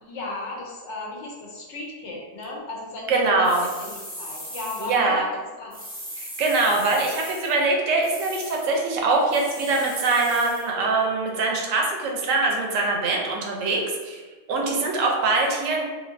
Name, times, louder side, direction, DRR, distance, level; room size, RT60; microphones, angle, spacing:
voice 1, 0.0-3.5 3.8-5.3 5.6-5.8 14.5-14.8, left 2 dB, 70° left, -2 dB, 1.0 m, -35 dB
voice 2, 3.1-3.6 4.8-5.2 6.2-14.2 14.5-15.8, right 3 dB, 85° right, 0 dB, 1.0 m, -23 dB
sound 1, 3.4-5.0 5.7-7.6 8.0-8.7 9.3-10.7, equal, 10° right, 0.5 m, -38 dB
3.0 x 2.7 x 2.5 m, 1.4 s
omnidirectional pair, 1.3 m